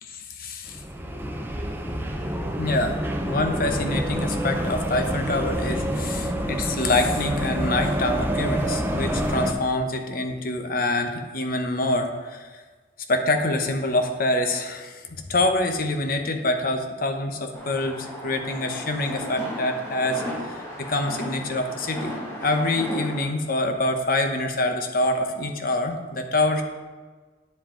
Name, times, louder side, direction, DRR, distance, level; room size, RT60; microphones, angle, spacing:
voice 1, 0.1-0.8 2.6-3.0 3.3-12.6 13.1-22.2 22.4-26.6, left 2 dB, 55° left, 5 dB, 1.0 m, -26 dB
sound 1, 0.7-9.5, right 1 dB, 10° right, 0.8 m, -27 dB
sound 2, 17.5-23.2, equal, 15° left, 2.2 m, -35 dB
9.4 x 7.6 x 3.9 m, 1.4 s
head